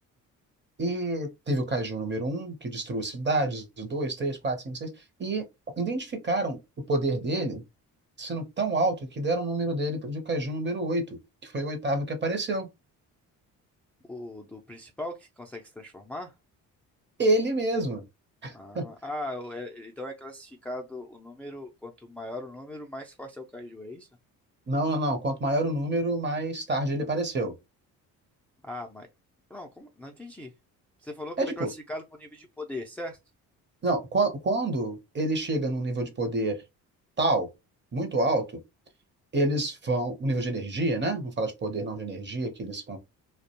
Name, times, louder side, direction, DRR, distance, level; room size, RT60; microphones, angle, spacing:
voice 1, 0.8-4.9 5.2-5.5 5.8-6.6 6.9-7.6 8.2-12.7 17.2-18.0 18.4-18.9 24.7-27.5 31.4-31.7 33.8-36.6 37.2-37.5 37.9-38.5 39.3-43.0, right 2 dB, 30° right, 0.7 m, -28 dB
voice 2, 14.1-16.3 18.5-24.1 28.6-29.1 29.5-30.5 31.0-33.2, left 1 dB, 5° left, 0.3 m, -39 dB
2.3 x 2.2 x 2.8 m
supercardioid pair, 75°, 36 cm